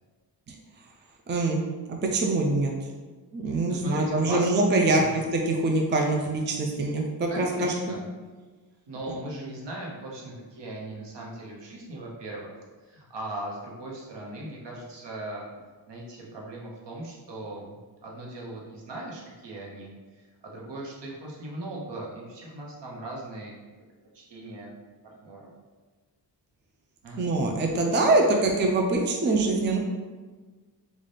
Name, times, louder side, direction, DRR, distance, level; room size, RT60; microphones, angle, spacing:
voice 1, 1.3-1.6 1.9-2.7 3.3-5.0 5.5-7.7 27.2-29.8, right 2 dB, 30° right, 1 dB, 0.4 m, -24 dB
voice 2, 3.5-4.5 4.9-5.2 7.3-8.1 8.9-15.5 15.9-23.5 24.1-24.7 25.2-25.5 27.0-27.3, right 1 dB, 80° right, -2 dB, 1.0 m, -39 dB
4.0 x 2.5 x 3.3 m, 1.3 s
wide cardioid pair, 125°, 42 cm